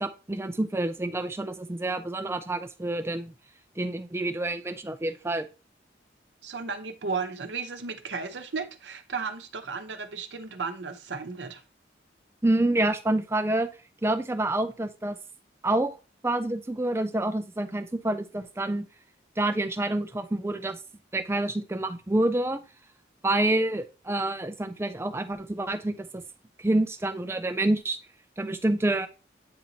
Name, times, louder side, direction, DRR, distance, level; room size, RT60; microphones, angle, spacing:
voice 1, 0.0-3.3 3.8-5.5 12.4-13.7 14.0-15.2 15.6-15.9 16.2-18.9 19.4-20.8 21.1-22.6 23.2-26.2 26.6-28.0 28.4-29.1, right 1 dB, 15° right, 0.4 m, -27 dB
voice 2, 6.4-11.6, right 4 dB, 75° right, 0.8 m, -34 dB
8.6 x 2.9 x 3.9 m
head